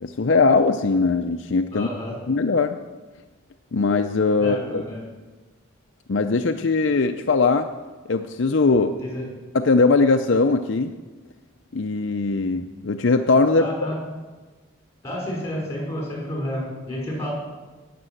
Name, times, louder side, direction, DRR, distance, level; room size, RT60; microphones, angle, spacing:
voice 1, 0.0-1.9 2.3-2.8 3.7-4.8 6.1-7.7 8.1-8.9 9.5-10.9 11.7-13.6, left 3 dB, 60° left, 6 dB, 0.6 m, -20 dB
voice 2, 1.7-2.2 4.4-5.0 9.0-9.3 13.6-14.0 15.0-17.3, left 1 dB, 15° left, -2 dB, 5.3 m, -30 dB
18.0 x 6.8 x 7.7 m, 1.3 s
head